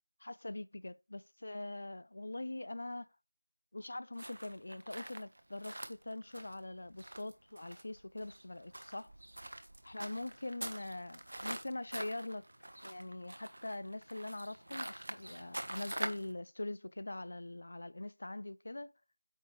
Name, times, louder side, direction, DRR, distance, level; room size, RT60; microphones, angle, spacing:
voice 1, 0.2-3.1 3.7-9.1 9.8-12.5 12.8-18.9, left 2 dB, 50° left, 0.5 m, -43 dB
sound 1, 4.2-16.3, right 1 dB, 65° right, 1.2 m, -45 dB
8.6 x 5.1 x 3.1 m
figure-of-eight pair, 175°, 0 cm